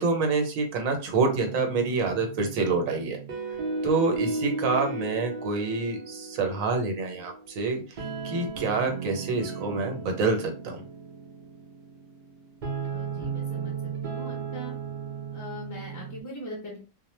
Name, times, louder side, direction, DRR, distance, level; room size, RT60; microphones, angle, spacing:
voice 1, 0.0-3.2 3.8-7.8 8.2-10.8, right 3 dB, 80° right, 4 dB, 1.0 m, -27 dB
sound 1, 1.1-16.2, right 4 dB, 60° right, 0.5 m, -35 dB
voice 2, 12.8-13.7 14.0-14.7 15.3-16.8, equal, 30° left, -2 dB, 0.3 m, -40 dB
2.1 x 2.1 x 3.0 m, 0.34 s
omnidirectional pair, 1.4 m